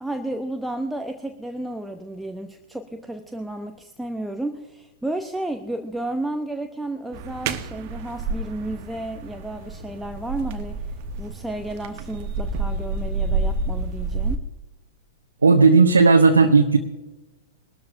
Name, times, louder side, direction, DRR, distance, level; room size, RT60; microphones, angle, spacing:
voice 1, 0.0-10.9 11.2-14.5, right 1 dB, 5° right, 5 dB, 0.8 m, -32 dB
sound 1, 7.1-14.4, right 3 dB, 45° right, 1.1 m, -29 dB
voice 2, 15.4-16.8, right 4 dB, 80° right, 2 dB, 1.2 m, -14 dB
21.5 x 13.0 x 2.7 m, 1.1 s
figure-of-eight pair, 105°, 0 cm